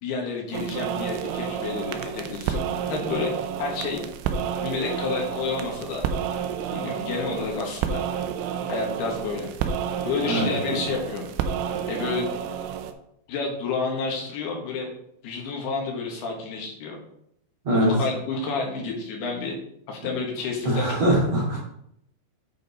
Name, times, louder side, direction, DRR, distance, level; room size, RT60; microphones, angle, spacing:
voice 1, 0.0-3.3 3.6-4.0 4.6-6.1 6.7-8.0 8.7-9.5 10.0-11.3 11.9-12.3 13.3-14.9 15.2-17.0 17.7-19.6 19.9-21.0, left 4 dB, 65° left, 0 dB, 3.2 m, -30 dB
sound 1, 0.5-12.9, right 8 dB, 85° right, 3.1 m, -30 dB
voice 2, 20.6-21.6, right 1 dB, 45° right, -8 dB, 2.9 m, -22 dB
9.3 x 5.2 x 4.1 m, 0.73 s
omnidirectional pair, 5.3 m